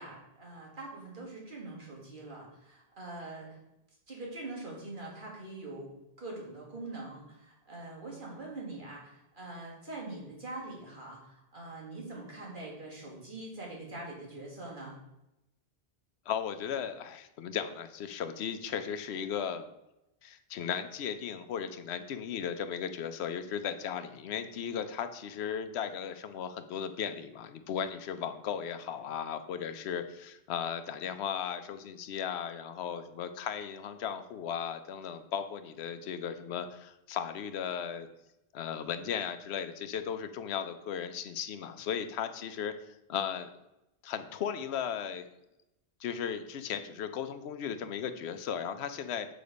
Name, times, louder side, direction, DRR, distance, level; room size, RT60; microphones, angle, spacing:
voice 1, 0.0-3.6 4.1-15.0, right 2 dB, 55° right, -3 dB, 2.0 m, -43 dB
voice 2, 16.3-19.7 20.2-38.1 38.5-43.5 44.0-45.3 46.0-49.3, left 8 dB, 90° left, 10 dB, 0.9 m, -36 dB
6.7 x 3.9 x 5.2 m, 0.90 s
omnidirectional pair, 1.1 m